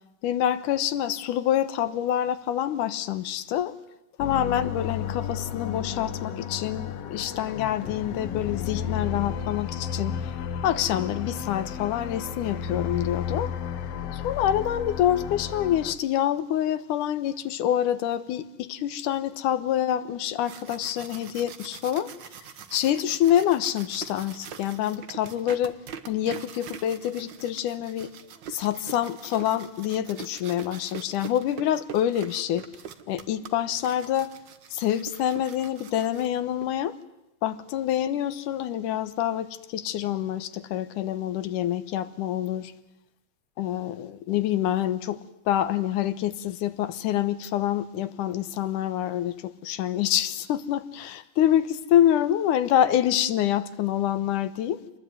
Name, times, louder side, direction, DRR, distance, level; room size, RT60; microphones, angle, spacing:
voice 1, 0.2-3.8 4.2-10.2 10.6-13.5 14.1-22.1 22.7-25.8 26.1-28.1 28.5-32.7 33.1-34.3 34.7-37.0 37.4-42.7 43.6-45.2 45.5-54.8, left 11 dB, 85° left, 2.6 m, -26 dB
sound 1, 4.2-15.9, left 8 dB, 60° left, 2.0 m, -33 dB
sound 2, 20.2-36.6, right 7 dB, 55° right, 1.4 m, -44 dB
27.0 x 20.5 x 9.5 m
omnidirectional pair, 3.5 m